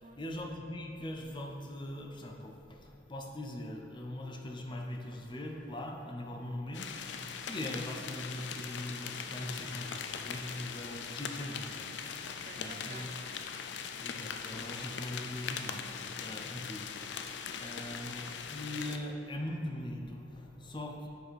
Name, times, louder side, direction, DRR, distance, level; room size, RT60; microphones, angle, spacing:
voice 1, 0.2-7.0 7.5-11.9 12.6-13.1 14.0-15.9 16.2-16.9 17.6-21.1, left 1 dB, 25° left, 1 dB, 0.7 m, -41 dB
sound 1, 6.7-19.0, left 6 dB, 65° left, 0.4 m, -41 dB
voice 2, 12.2-13.9, right 4 dB, 40° right, 5 dB, 0.4 m, -54 dB
7.8 x 4.9 x 4.2 m, 2.8 s
head